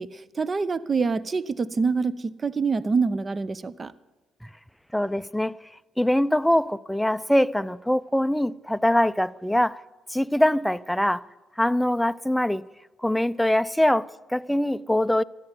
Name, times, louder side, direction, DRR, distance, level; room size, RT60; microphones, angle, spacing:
voice 1, 0.0-3.9, right 4 dB, 40° right, 0.7 m, -26 dB
voice 2, 4.9-5.6 6.0-9.8 10.1-11.2 11.6-12.7 13.0-15.2, left 1 dB, 5° left, 0.5 m, -23 dB
14.0 x 12.0 x 8.1 m
supercardioid pair, 60°, 0 cm